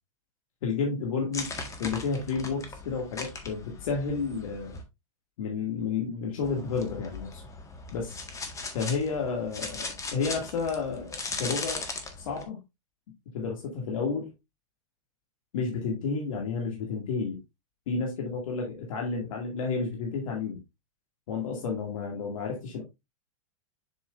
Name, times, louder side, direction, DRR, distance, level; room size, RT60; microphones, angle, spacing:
voice 1, 0.6-1.5 1.8-4.8 5.4-7.4 7.9-8.2 8.7-11.9 12.2-12.6 13.3-14.3 15.5-17.4 17.9-20.6 21.3-22.8, left 4 dB, 70° left, 0 dB, 2.3 m, -31 dB
sound 1, 1.3-4.8 6.4-12.4, left 3 dB, 15° left, 1.6 m, -38 dB
7.3 x 6.2 x 2.5 m, 0.22 s
hypercardioid pair, 115°, 18 cm